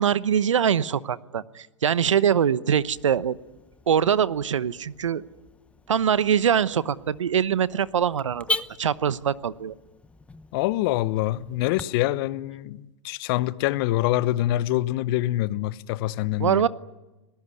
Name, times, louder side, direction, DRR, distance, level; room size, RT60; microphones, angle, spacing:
voice 1, 0.0-3.4 3.9-5.2 5.9-9.7 16.4-16.7, right 8 dB, 85° right, 1.0 m, -23 dB
Car / Alarm, 2.7-11.8, left 2 dB, 10° left, 0.8 m, -39 dB
voice 2, 10.5-16.6, left 15 dB, 50° left, 1.1 m, -25 dB
30.0 x 19.0 x 9.8 m
hypercardioid pair, 115°, 16 cm